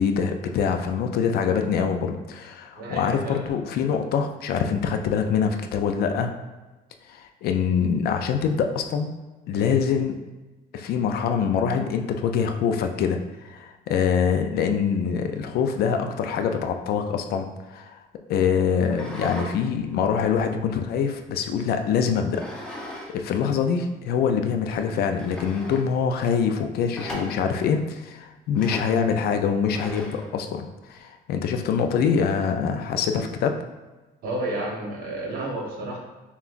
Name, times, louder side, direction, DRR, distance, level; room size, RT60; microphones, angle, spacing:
voice 1, 0.0-6.3 7.1-9.1 9.5-10.2 10.7-13.2 13.4-18.0 18.3-22.4 23.1-33.5, left 6 dB, 65° left, 6 dB, 0.4 m, -24 dB
voice 2, 2.7-3.4 34.2-36.0, right 1 dB, 60° right, -1 dB, 1.1 m, -31 dB
sound 1, 18.8-19.5 19.9-21.3 22.3-23.1 23.4-23.5 24.2-24.3 24.7-24.8 25.2-25.9 26.9-27.6 28.5-29.0 29.7-30.3, equal, 5° left, 0.8 m, -37 dB
5.6 x 2.3 x 2.5 m, 1.2 s
cardioid pair, 110°, 17 cm